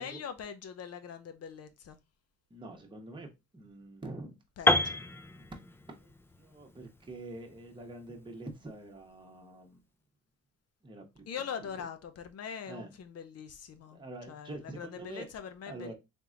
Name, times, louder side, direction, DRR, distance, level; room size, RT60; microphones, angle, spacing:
voice 1, 0.0-2.0 4.6-5.0 11.3-15.9, left 7 dB, 55° left, 0.7 m, -42 dB
voice 2, 2.5-4.3 5.5-5.6 5.9-9.8 10.8-11.2 11.7-11.8 12.7-12.9 13.9-15.3 15.7-15.9, right 2 dB, 15° right, 1.1 m, -45 dB
Piano, 4.7-8.6, left 1 dB, 10° left, 0.3 m, -31 dB
3.6 x 2.9 x 3.7 m
cardioid pair, 110°, 30 cm